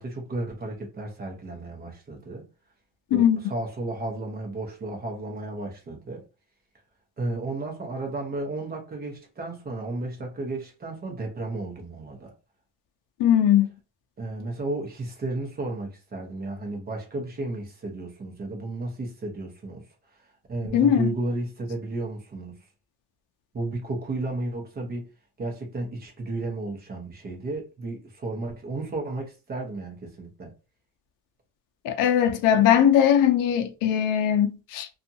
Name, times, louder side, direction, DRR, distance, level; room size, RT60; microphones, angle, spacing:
voice 1, 0.0-2.4 3.1-6.2 7.2-12.3 14.2-19.8 20.5-22.6 23.5-25.1 25.4-30.5, right 2 dB, 25° right, 0.8 m, -33 dB
voice 2, 13.2-13.7 20.7-21.1 31.8-34.9, left 9 dB, 60° left, 0.5 m, -20 dB
2.6 x 2.4 x 2.7 m
cardioid pair, 160°, 37 cm